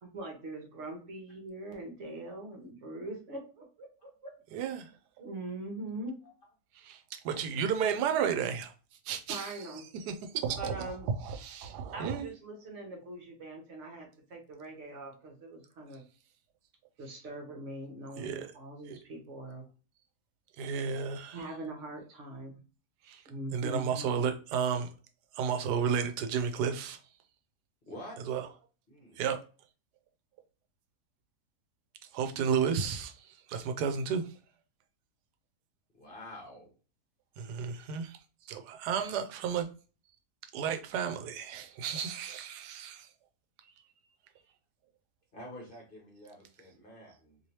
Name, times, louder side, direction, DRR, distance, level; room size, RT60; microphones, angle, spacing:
voice 1, 0.0-3.9 4.2-4.3 5.2-6.2 9.3-9.8 10.6-11.1 11.9-16.0 17.0-19.6 21.3-22.6 23.3-24.1, right 2 dB, 55° right, 1.1 m, -42 dB
voice 2, 4.5-4.9 6.8-8.7 9.1-9.6 10.1-10.9 11.2-12.3 18.2-18.5 18.9-19.0 20.6-21.4 23.1-23.2 23.5-24.9 25.3-27.0 28.3-28.4 29.2-29.4 32.1-34.2 37.4-38.2 38.5-39.7 40.5-43.1, right 7 dB, 90° right, 1.2 m, -32 dB
voice 3, 23.9-24.3 27.9-28.2 28.9-29.2 35.9-36.7 45.3-47.4, left 1 dB, 40° left, 0.9 m, -48 dB
3.1 x 2.9 x 2.8 m
omnidirectional pair, 1.7 m